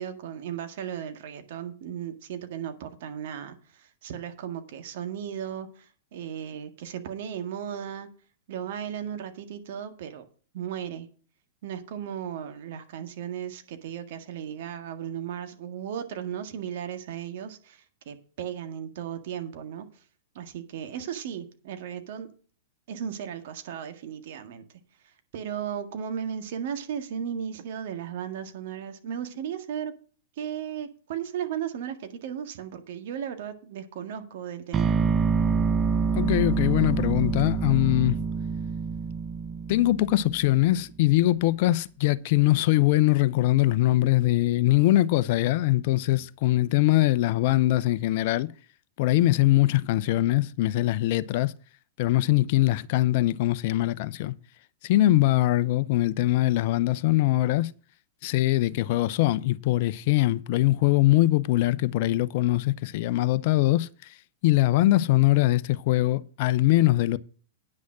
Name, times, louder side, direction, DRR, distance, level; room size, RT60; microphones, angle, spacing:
voice 1, 0.0-8.1 8.5-10.2 10.5-11.1 11.6-19.9 20.3-22.3 22.9-24.6 25.0-29.9 30.4-35.0, right 9 dB, 60° right, 1.7 m, -36 dB
sound 1, 34.7-40.8, right 5 dB, 25° right, 0.6 m, -26 dB
voice 2, 36.1-38.2 39.7-48.5 49.0-51.5 52.0-54.3 54.8-57.7 58.2-64.1 64.4-67.2, left 16 dB, 55° left, 0.6 m, -22 dB
9.8 x 6.3 x 6.0 m
hypercardioid pair, 105°, 0 cm